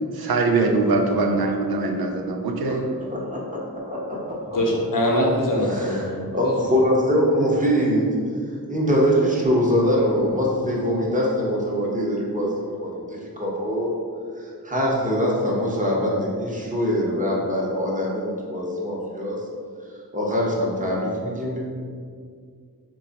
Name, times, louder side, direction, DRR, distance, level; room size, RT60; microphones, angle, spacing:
voice 1, 0.1-2.9, right 3 dB, 75° right, 2 dB, 0.5 m, -22 dB
voice 2, 3.0-4.8 5.7-8.1 8.7-13.9 14.4-19.4 20.1-21.6, equal, 20° right, -4 dB, 0.9 m, -23 dB
voice 3, 4.5-6.5, equal, 60° left, -1 dB, 0.8 m, -23 dB
3.1 x 2.3 x 3.9 m, 2.1 s
cardioid pair, 40°, 37 cm